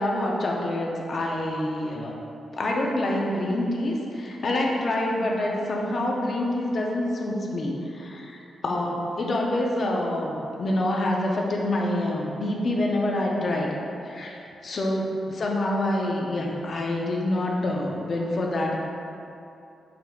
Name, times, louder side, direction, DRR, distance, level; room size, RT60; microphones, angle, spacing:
voice 1, 0.0-2.2 2.5-13.7 14.0-15.1 15.4-18.8, left 1 dB, 40° left, -1 dB, 0.4 m, -26 dB
4.8 x 2.3 x 3.4 m, 2.7 s
wide cardioid pair, 145°, 0 cm